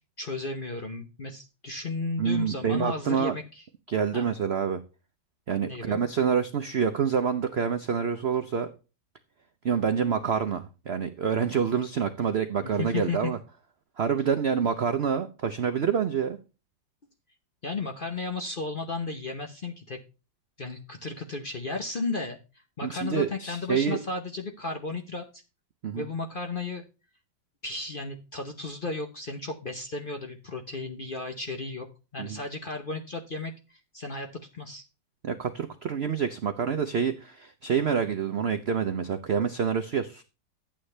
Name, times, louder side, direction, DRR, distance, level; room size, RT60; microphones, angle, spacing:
voice 1, 0.2-3.4 4.1-4.3 5.7-6.0 12.6-13.3 17.6-20.0 20.6-25.4 25.9-26.8 27.6-31.9 32.1-34.8, left 3 dB, 45° left, 4 dB, 0.7 m, -34 dB
voice 2, 2.2-3.4 3.9-4.8 5.5-8.7 9.6-13.4 14.0-16.4 22.8-24.0 25.8-26.1 32.2-32.4 35.2-40.2, right 7 dB, 80° right, 8 dB, 0.5 m, -27 dB
11.5 x 8.8 x 3.3 m, 0.31 s
omnidirectional pair, 2.0 m